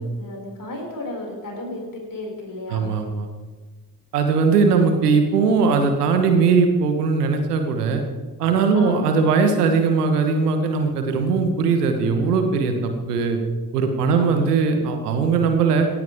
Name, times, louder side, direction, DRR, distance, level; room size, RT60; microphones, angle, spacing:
voice 1, 0.0-2.9 8.7-9.0 14.2-14.4, left 1 dB, 45° left, -1 dB, 5.9 m, -34 dB
voice 2, 2.7-3.3 4.1-8.0 8.4-13.4 13.7-15.9, right 5 dB, 85° right, 6 dB, 1.4 m, -19 dB
17.0 x 15.5 x 3.6 m, 1.3 s
hypercardioid pair, 45°, 45 cm